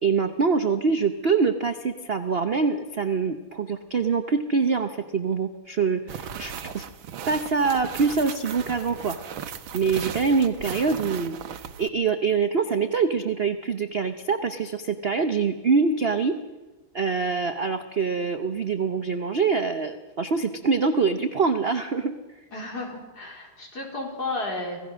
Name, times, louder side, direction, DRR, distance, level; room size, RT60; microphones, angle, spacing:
voice 1, 0.0-6.8 7.3-9.4 9.7-11.4 11.8-16.4 16.9-22.1, right 5 dB, 50° right, 8 dB, 0.7 m, -24 dB
sound 1, 6.1-11.9, right 8 dB, 75° right, 1.8 m, -37 dB
voice 2, 22.5-24.8, left 2 dB, 50° left, 0 dB, 4.6 m, -33 dB
26.0 x 17.0 x 6.3 m, 1.1 s
omnidirectional pair, 2.2 m